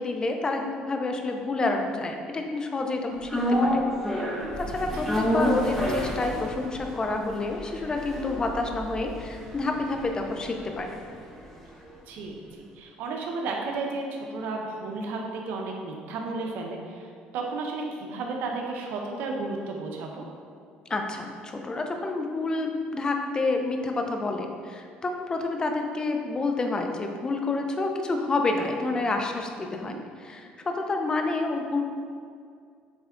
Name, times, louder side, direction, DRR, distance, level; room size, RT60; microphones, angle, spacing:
voice 1, 0.0-3.8 4.6-10.9 20.9-31.8, left 3 dB, 25° left, 4 dB, 0.6 m, -29 dB
sound 1, 3.3-11.6 11.9-12.0, equal, 10° left, 1.1 m, -29 dB
voice 2, 12.1-20.3 29.6-30.0, right 3 dB, 75° right, 1 dB, 0.9 m, -33 dB
7.8 x 3.4 x 3.8 m, 2.2 s
cardioid pair, 115°, 3 cm